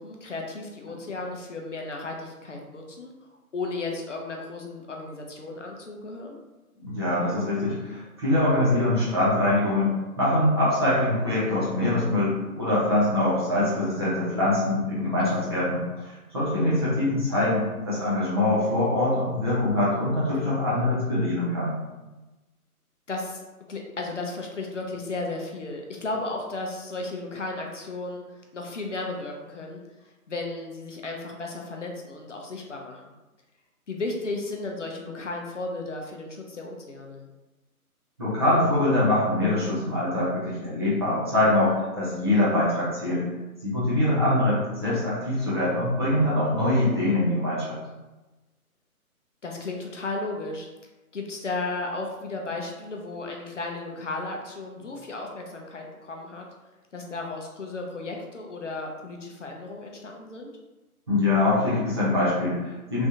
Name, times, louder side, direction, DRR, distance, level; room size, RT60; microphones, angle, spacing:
voice 1, 0.0-3.1 3.5-6.4 15.2-15.5 23.1-23.4 23.7-29.8 30.3-33.2 33.9-37.3 49.4-50.7 51.1-56.4 56.9-60.5, left 2 dB, 55° left, 1 dB, 0.7 m, -34 dB
voice 2, 6.9-21.8 38.2-43.2 43.6-47.8 61.1-63.1, left 1 dB, 15° right, -10 dB, 0.8 m, -24 dB
3.5 x 3.2 x 2.7 m, 1.1 s
figure-of-eight pair, 145°, 45 cm